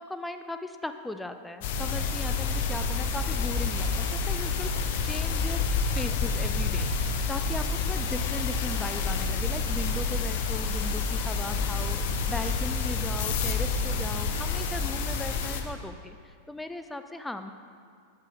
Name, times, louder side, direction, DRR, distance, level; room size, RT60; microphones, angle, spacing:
voice 1, 0.0-5.7 5.9-6.9 7.3-17.5, left 1 dB, 5° left, 8 dB, 0.4 m, -38 dB
sound 1, 1.6-15.6, left 4 dB, 50° left, 0.6 m, -28 dB
12.0 x 4.9 x 3.5 m, 2.2 s
figure-of-eight pair, 90°, 0 cm